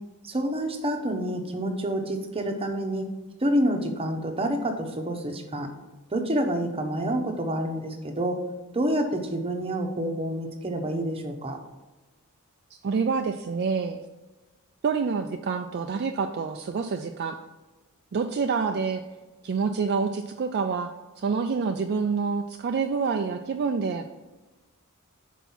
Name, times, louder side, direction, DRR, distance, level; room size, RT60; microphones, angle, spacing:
voice 1, 0.2-3.1 3.4-5.7 6.1-8.4 8.7-11.6, right 1 dB, 25° right, 4 dB, 0.9 m, -28 dB
voice 2, 12.8-14.0 14.8-17.4 18.1-19.0 19.4-24.1, right 5 dB, 50° right, 5 dB, 0.4 m, -27 dB
6.0 x 4.6 x 5.5 m, 1.2 s
head